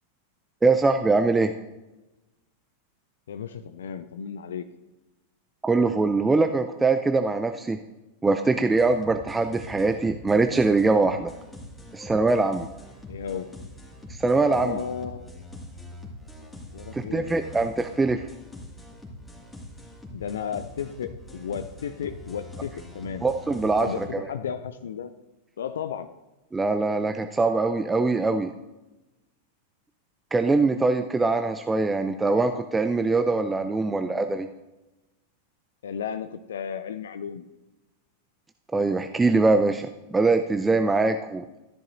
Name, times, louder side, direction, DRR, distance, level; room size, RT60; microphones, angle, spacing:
voice 1, 0.6-1.5 5.6-7.8 8.2-11.3 11.9-12.7 14.1-14.8 16.9-18.2 23.2-24.1 26.5-28.5 30.3-34.5 38.7-41.5, right 3 dB, 10° right, 7 dB, 0.5 m, -22 dB
voice 2, 3.3-4.6 13.1-13.5 14.5-15.3 16.7-17.3 20.1-23.3 23.8-25.1 25.6-26.1 35.8-37.5, left 7 dB, 65° left, 11 dB, 0.5 m, -34 dB
sound 1, 8.7-24.1, left 1 dB, 5° left, 2.2 m, -43 dB
13.5 x 10.5 x 2.7 m, 1.0 s
figure-of-eight pair, 90°, 0 cm